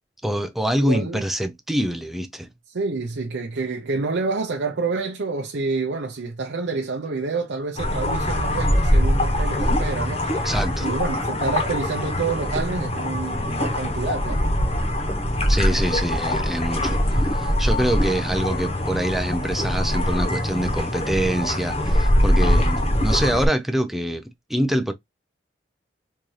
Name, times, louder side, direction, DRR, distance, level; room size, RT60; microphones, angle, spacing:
voice 1, 0.2-2.5 10.4-10.9 15.5-17.0 17.3-24.2 24.5-24.9, right 1 dB, ahead, 0.4 m, -25 dB
voice 2, 0.8-1.3 2.7-10.5 10.8-14.6, right 3 dB, 75° right, 0.6 m, -28 dB
sound 1, 7.8-23.5, left 1 dB, 35° left, 1.0 m, -22 dB
3.6 x 2.7 x 3.2 m
head